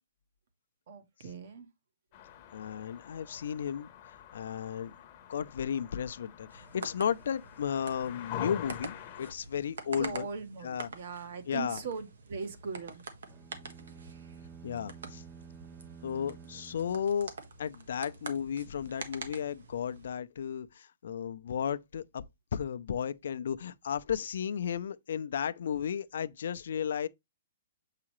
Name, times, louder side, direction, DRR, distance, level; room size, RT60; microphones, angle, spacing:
voice 1, 0.9-1.7 10.0-13.0, right 5 dB, 50° right, 1.1 m, -40 dB
sound 1, 2.1-9.3, left 10 dB, 25° left, 0.8 m, -45 dB
voice 2, 2.5-4.9 5.3-10.3 10.6-10.9 11.5-11.8 14.6-15.2 16.0-17.3 17.6-22.2 22.5-27.1, left 8 dB, 65° left, 0.5 m, -34 dB
sound 2, 6.5-20.1, right 4 dB, 85° right, 1.5 m, -47 dB
sound 3, 13.3-17.7, right 7 dB, 15° right, 0.4 m, -51 dB
7.5 x 4.8 x 3.1 m
hypercardioid pair, 170°, 0 cm